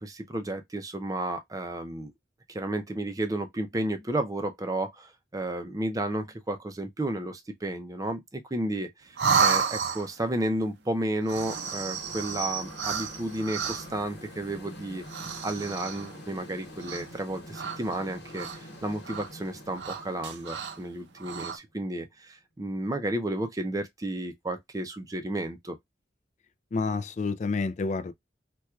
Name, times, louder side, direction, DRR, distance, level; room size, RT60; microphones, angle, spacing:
voice 1, 0.0-2.1 2.5-15.0 15.4-25.8, right 1 dB, 20° right, 0.5 m, -32 dB
sound 1, 9.2-10.3 11.2-14.0 15.0-16.2 16.8-17.2 17.5-18.7 19.0-19.3 19.7-20.8 21.2-21.6, right 6 dB, 75° right, 0.5 m, -31 dB
sound 2, 11.4-21.9, left 1 dB, 80° left, 1.2 m, -46 dB
voice 2, 26.7-28.1, left 4 dB, 40° left, 0.4 m, -29 dB
4.4 x 2.3 x 2.3 m
head